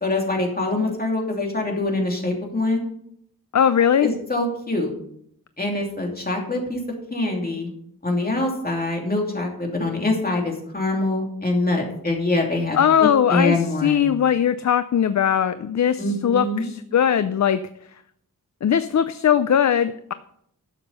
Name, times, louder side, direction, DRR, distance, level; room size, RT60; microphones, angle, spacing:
voice 1, 0.0-2.8 4.0-4.9 5.6-6.8 7.1-7.7 8.0-14.1 16.0-16.6, left 2 dB, 25° left, 0 dB, 2.8 m, -24 dB
voice 2, 3.5-4.1 12.7-17.6 18.6-20.1, left 8 dB, 50° left, 12 dB, 0.5 m, -20 dB
12.0 x 7.3 x 5.5 m, 0.70 s
wide cardioid pair, 135°, 36 cm